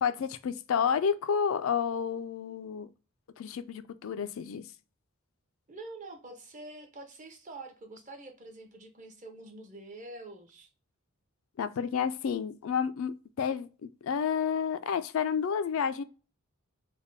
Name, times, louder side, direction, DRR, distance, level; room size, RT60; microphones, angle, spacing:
voice 1, 0.0-2.9 3.4-4.7 11.6-16.0, left 7 dB, 65° left, 0.3 m, -30 dB
voice 2, 5.7-10.7, right 2 dB, 35° right, 0.7 m, -46 dB
3.4 x 2.2 x 3.9 m
head